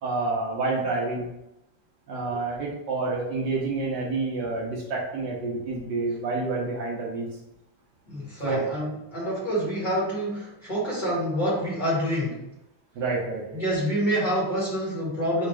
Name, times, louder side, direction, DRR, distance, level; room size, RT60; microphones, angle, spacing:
voice 1, 0.0-1.3 2.1-7.3 8.4-8.7 12.9-13.6, right 3 dB, 65° right, -3 dB, 1.5 m, -28 dB
voice 2, 8.1-12.4 13.5-15.5, equal, 25° left, -7 dB, 1.8 m, -27 dB
3.7 x 2.9 x 4.7 m, 0.87 s
omnidirectional pair, 2.0 m